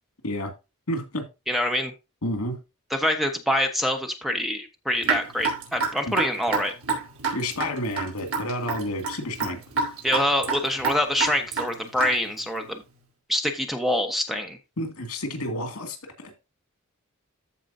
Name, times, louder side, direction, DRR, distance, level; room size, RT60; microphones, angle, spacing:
voice 1, 0.9-1.2 2.2-2.6 6.1-6.2 7.3-9.6 14.8-16.4, left 1 dB, 80° left, 2.3 m, -30 dB
voice 2, 1.5-1.9 2.9-6.7 10.0-12.8 13.3-14.6, left 1 dB, ahead, 1.1 m, -25 dB
Raindrop / Drip, 5.0-12.4, right 4 dB, 70° right, 4.4 m, -28 dB
14.5 x 4.9 x 2.8 m
head